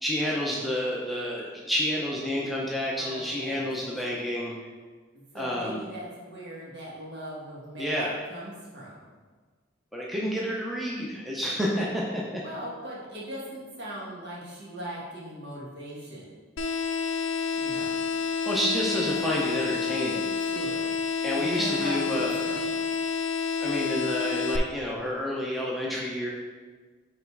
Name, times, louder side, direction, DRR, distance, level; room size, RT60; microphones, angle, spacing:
voice 1, 0.0-4.5 5.3-5.8 7.8-8.1 9.9-12.4 18.5-20.3 21.2-22.3 23.6-26.3, equal, ahead, -4 dB, 0.6 m, -29 dB
voice 2, 2.9-4.0 5.3-9.0 12.4-16.3 17.5-18.0 20.4-20.9 21.4-22.7, right 1 dB, 60° right, -5 dB, 1.7 m, -40 dB
sound 1, 16.6-24.6, left 5 dB, 80° left, 0.5 m, -29 dB
5.3 x 3.9 x 4.7 m, 1.4 s
head